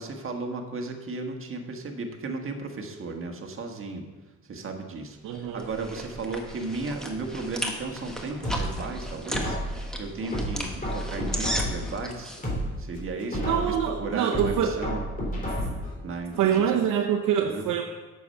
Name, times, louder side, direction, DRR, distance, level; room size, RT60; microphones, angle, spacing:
voice 1, 0.0-4.0 4.4-9.6 10.0-12.3 12.8-15.0 16.0-16.8 17.4-17.7, right 3 dB, 45° right, 4 dB, 1.5 m, -35 dB
voice 2, 5.2-5.7 13.4-14.8 16.4-17.8, right 8 dB, 85° right, 1 dB, 0.9 m, -25 dB
sound 1, 5.3-12.4, equal, ahead, 1.4 m, -36 dB
sound 2, 8.4-9.9 10.3-11.9 12.3-13.9 14.3-15.9 16.3-16.4, equal, 30° left, 3.3 m, -31 dB
8.4 x 7.0 x 5.6 m, 1.3 s
cardioid pair, 90°, 30 cm